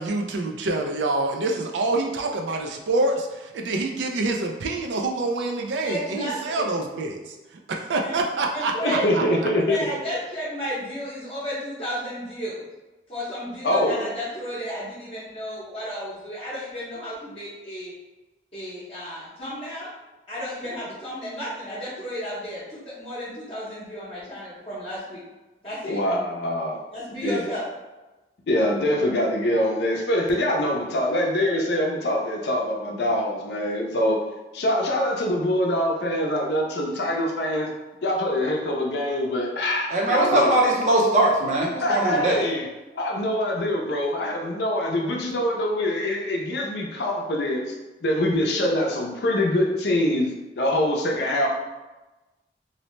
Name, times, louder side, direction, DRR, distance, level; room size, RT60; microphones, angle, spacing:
voice 1, 0.0-3.1 3.6-7.2 7.7-9.2, right 2 dB, 90° right, 2 dB, 0.4 m, -26 dB
voice 2, 5.8-6.7 8.0-8.2 8.5-9.1 9.6-12.6 13.1-17.9 18.5-19.9 20.3-25.2 25.6-26.0 26.9-27.6, equal, 30° left, -11 dB, 0.7 m, -33 dB
voice 3, 8.8-9.9 13.6-14.0 25.8-26.8 27.2-27.4 28.5-34.2 34.5-37.7 38.0-40.5 41.8-42.7 43.0-47.7 48.0-51.5, left 1 dB, 70° left, 0 dB, 0.5 m, -24 dB
voice 4, 39.9-42.4, right 1 dB, 40° right, -3 dB, 0.6 m, -20 dB
2.6 x 2.1 x 3.0 m, 1.1 s
head